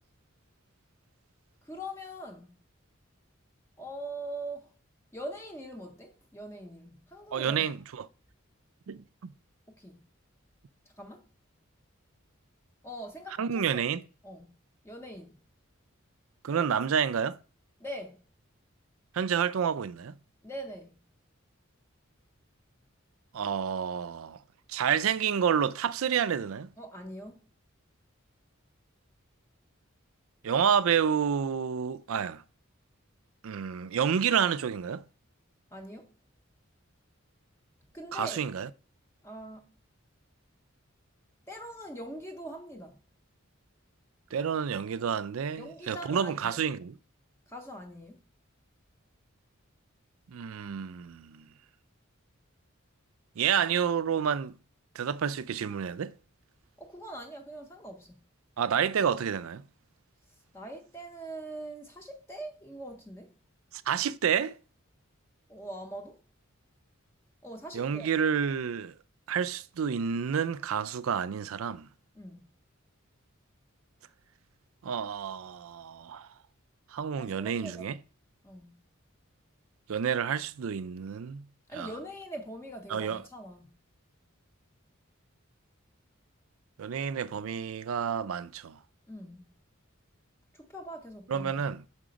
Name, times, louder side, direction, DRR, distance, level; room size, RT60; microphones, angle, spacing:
voice 1, 1.6-2.6 3.8-4.7 5.1-7.7 9.7-10.0 11.0-11.2 12.8-13.8 14.2-14.5 14.8-15.3 16.5-16.7 17.8-18.2 20.4-20.9 26.8-27.4 35.7-36.1 37.9-38.5 39.2-39.7 41.5-43.0 45.6-46.6 47.5-48.2 56.8-58.2 60.5-63.3 65.5-66.2 67.4-68.1 72.2-72.5 77.2-77.9 78.4-78.8 81.7-83.7 89.1-89.5 90.5-91.6, right 1 dB, 10° left, 0.6 m, -42 dB
voice 2, 7.3-8.1 8.9-9.3 13.4-14.0 16.4-17.4 19.1-20.2 23.3-24.4 24.7-26.7 30.4-32.4 33.4-35.0 38.1-38.7 44.3-47.0 50.3-51.4 53.4-54.5 55.0-56.1 58.6-59.6 63.9-64.6 67.7-68.9 69.3-71.9 74.8-76.3 76.9-78.0 79.9-81.4 81.7-81.9 82.9-83.2 86.8-88.8 91.3-91.8, right 7 dB, 75° right, 0.4 m, -29 dB
6.5 x 4.9 x 5.1 m
head